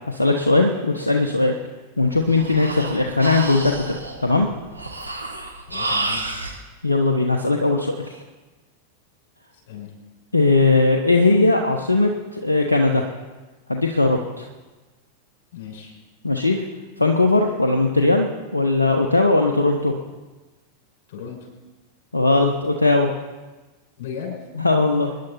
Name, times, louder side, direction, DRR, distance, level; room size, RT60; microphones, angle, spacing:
voice 1, 0.1-1.6 2.0-4.5 6.8-8.2 10.3-13.1 13.7-14.5 16.2-16.6 17.0-18.3 18.5-19.9 22.1-23.1 24.6-25.1, left 2 dB, 80° left, 3 dB, 1.1 m, -19 dB
Breathing, 2.0-6.6, right 2 dB, 85° right, 1.6 m, -30 dB
voice 2, 5.6-6.3 9.5-9.9 15.5-16.0 21.1-21.4 24.0-24.3, left 7 dB, 50° left, 0 dB, 6.1 m, -35 dB
26.0 x 10.5 x 4.3 m, 1.2 s
figure-of-eight pair, 90°, 0 cm